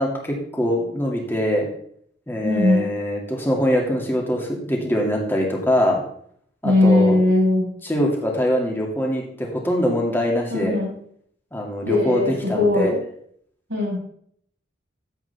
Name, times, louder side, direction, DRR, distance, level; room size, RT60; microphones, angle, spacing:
voice 1, 0.0-1.7 2.3-6.0 6.6-7.2 7.8-10.8 11.5-12.9, equal, 10° left, -1 dB, 2.3 m, -23 dB
voice 2, 2.4-2.9 6.6-7.7 10.5-10.9 11.8-13.0 13.7-14.0, left 2 dB, 90° right, -3 dB, 4.6 m, -19 dB
13.5 x 7.9 x 3.5 m, 0.64 s
head